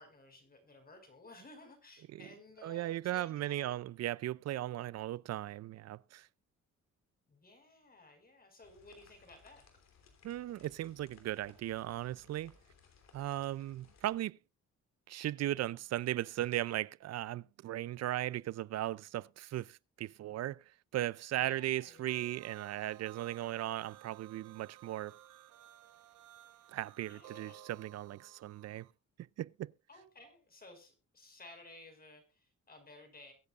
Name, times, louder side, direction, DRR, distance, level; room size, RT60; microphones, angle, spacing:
voice 1, 0.0-3.8 7.3-9.7 21.3-22.1 27.1-27.6 29.9-33.3, left 2 dB, 30° left, 5.3 m, -56 dB
voice 2, 2.6-6.3 10.2-12.5 13.1-14.4 15.1-20.6 20.9-25.2 26.7-28.9 29.2-29.7, right 14 dB, 60° right, 0.5 m, -37 dB
sound 1, 8.6-14.2, left 5 dB, 60° left, 3.2 m, -63 dB
sound 2, 22.0-28.9, right 11 dB, 90° right, 1.1 m, -56 dB
22.5 x 8.2 x 2.4 m
cardioid pair, 90°, 30 cm